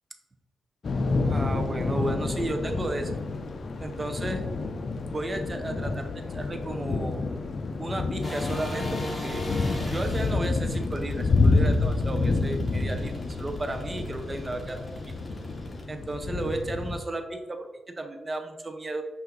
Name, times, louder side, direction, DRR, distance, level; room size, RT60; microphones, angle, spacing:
Thunder / Rain, 0.8-17.0, left 3 dB, 50° left, 0.4 m, -28 dB
voice 1, 1.3-3.1 3.8-4.4 5.1-6.1 6.3-7.2 7.8-9.4 9.8-13.1 13.4-14.8 15.9-19.0, right 2 dB, 30° right, 5 dB, 0.5 m, -33 dB
sound 1, 8.2-15.8, left 1 dB, 20° left, 1.3 m, -39 dB
5.5 x 2.5 x 3.8 m, 1.2 s
cardioid pair, 60°, 0 cm